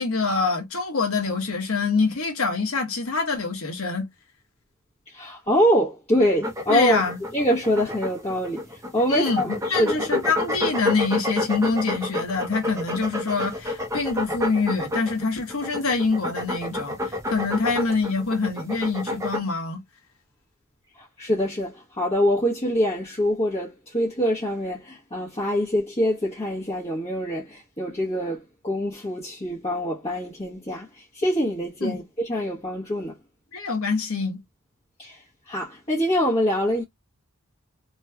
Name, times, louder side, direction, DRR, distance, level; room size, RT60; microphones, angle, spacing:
voice 1, 0.0-4.1 6.7-7.2 9.1-19.8 31.8-32.0 33.5-34.4, left 4 dB, 75° left, 1.3 m, -25 dB
voice 2, 5.1-7.0 7.3-8.6 8.9-10.3 21.0-30.9 31.1-33.2 35.0-35.2 35.5-36.8, equal, 25° left, 1.1 m, -24 dB
sound 1, 6.4-19.4, left 1 dB, 15° right, 0.7 m, -29 dB
3.0 x 2.9 x 2.2 m
head